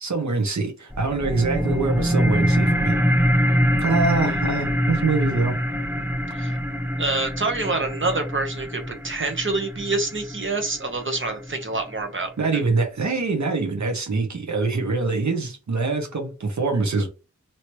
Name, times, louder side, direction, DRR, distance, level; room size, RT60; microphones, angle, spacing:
voice 1, 0.0-2.9 3.8-5.6 12.4-17.1, right 3 dB, 70° right, 0.9 m, -24 dB
sound 1, 0.9-11.9, equal, 5° right, 0.6 m, -24 dB
voice 2, 7.0-12.6, right 3 dB, 40° right, 1.0 m, -27 dB
3.0 x 2.9 x 3.0 m
wide cardioid pair, 65°, 30 cm